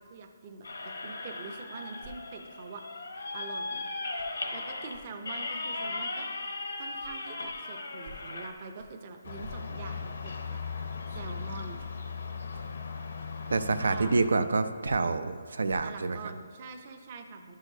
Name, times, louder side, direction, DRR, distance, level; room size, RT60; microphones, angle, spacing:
voice 1, 0.0-3.9 4.5-6.3 6.8-10.6 11.1-11.8 13.8-14.2 15.8-17.6, right 4 dB, 30° right, 5 dB, 0.5 m, -44 dB
sound 1, 0.6-8.5, left 2 dB, 90° left, 1.0 m, -37 dB
sound 2, 2.0-2.1 3.5-3.7 4.2-4.3 4.9-5.1 5.5-5.6 6.1-6.3 7.0-7.2 7.4-7.6 8.0-8.2 8.8-8.9 9.4-9.6 10.3-10.4 11.1-11.2 11.8-11.9 12.5-12.6 13.2-13.3 14.1-14.2 14.8-15.0 15.7-15.9, right 1 dB, 55° right, 0.8 m, -51 dB
sound 3, 9.2-14.3, left 5 dB, 60° left, 0.6 m, -38 dB
voice 2, 13.5-16.2, right 3 dB, 80° right, 10 dB, 0.4 m, -27 dB
11.5 x 6.4 x 2.7 m, 2.1 s
hypercardioid pair, 170°, 0 cm